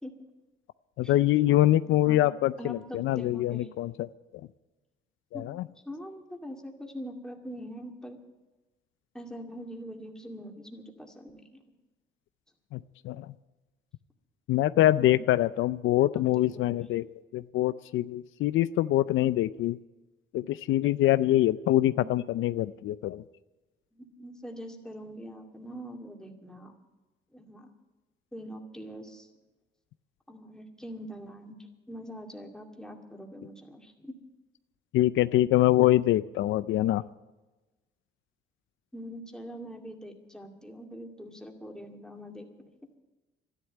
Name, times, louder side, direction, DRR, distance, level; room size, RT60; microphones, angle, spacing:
voice 1, 1.0-4.1 5.3-5.7 12.7-12.8 13.0-13.3 14.5-17.1 17.3-19.8 20.3-23.2 34.9-37.0, left 14 dB, 80° left, 15 dB, 0.5 m, -24 dB
voice 2, 2.6-3.7 5.3-5.5 5.8-8.2 9.1-11.6 15.0-15.3 16.1-16.8 21.9-22.1 23.9-26.7 27.3-27.7 28.3-29.3 30.3-31.5 31.9-34.1 38.9-42.5, equal, 5° left, 2 dB, 2.4 m, -43 dB
12.5 x 11.0 x 9.3 m, 1.1 s
cardioid pair, 90°, 20 cm